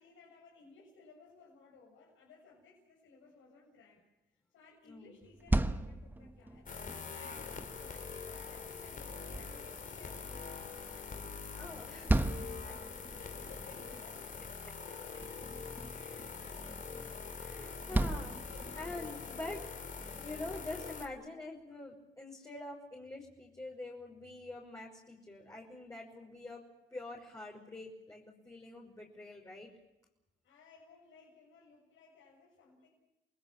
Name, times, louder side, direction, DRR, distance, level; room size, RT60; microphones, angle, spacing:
voice 1, 0.0-4.0 4.3-6.7 7.1-10.3 10.9-11.1 12.5-16.7 18.5-19.5 21.2-21.3 30.4-32.9, left 4 dB, 80° left, -3 dB, 7.5 m, -60 dB
sound 1, 5.2-19.2, right 1 dB, 10° right, 1.3 m, -38 dB
sound 2, 6.7-21.1, left 5 dB, 40° left, 3.0 m, -44 dB
voice 2, 11.6-12.3 12.6-12.7 15.9-16.3 17.4-19.7 20.1-26.6 26.9-29.7, left 2 dB, 15° left, -2 dB, 5.6 m, -46 dB
29.5 x 20.5 x 7.3 m, 0.93 s
cardioid pair, 90°, 20 cm